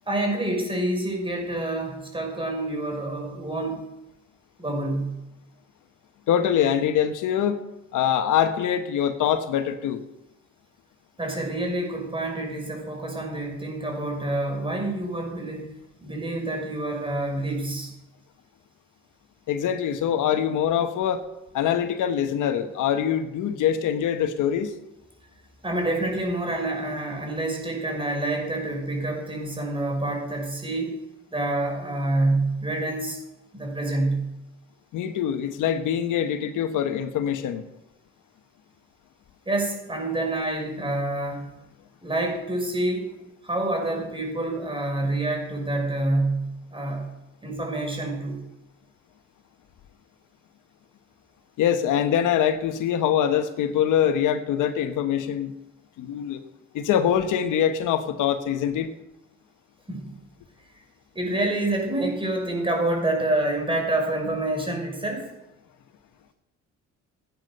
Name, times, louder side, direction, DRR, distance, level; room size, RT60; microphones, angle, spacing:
voice 1, 0.1-3.9 4.6-5.2 11.2-17.9 25.6-30.9 31.3-33.2 33.5-34.3 39.5-41.5 42.0-43.1 43.4-47.1 47.4-48.4 59.9-60.2 61.1-65.3, right 2 dB, 15° right, 1 dB, 6.0 m, -27 dB
voice 2, 6.3-7.6 7.9-10.0 19.5-21.3 21.5-24.7 34.9-37.6 51.6-55.5 56.0-56.4 56.7-58.9, left 9 dB, 85° left, 9 dB, 1.3 m, -24 dB
16.5 x 9.5 x 6.7 m, 0.94 s
cardioid pair, 90°, 30 cm